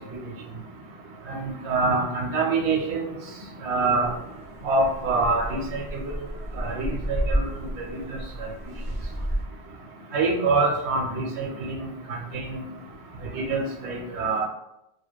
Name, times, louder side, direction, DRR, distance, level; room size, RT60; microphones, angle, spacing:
voice 1, 1.3-3.1 3.6-4.1 4.6-5.8 6.6-8.2 10.1-11.8 12.3-12.7 13.3-14.5, right 3 dB, 85° right, 0 dB, 0.9 m, -25 dB
sound 1, 4.0-9.4, equal, 15° left, 0.9 m, -32 dB
2.7 x 2.2 x 2.2 m, 0.86 s
omnidirectional pair, 1.1 m